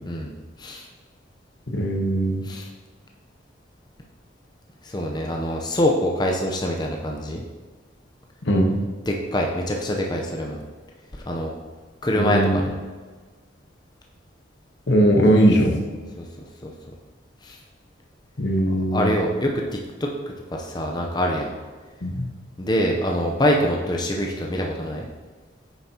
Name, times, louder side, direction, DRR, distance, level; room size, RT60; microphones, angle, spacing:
voice 1, 1.7-2.4 8.5-8.8 12.1-12.6 14.9-15.8 18.4-19.1 22.0-22.3, right 1 dB, 70° left, 2 dB, 1.2 m, -19 dB
voice 2, 4.8-7.4 9.1-10.6 11.3-11.5 12.0-12.8 16.2-16.3 16.6-16.7 17.4-17.6 18.7-19.5 20.0-21.5 22.6-25.0, equal, 20° left, 0 dB, 0.6 m, -25 dB
9.0 x 7.1 x 2.9 m, 1.5 s
head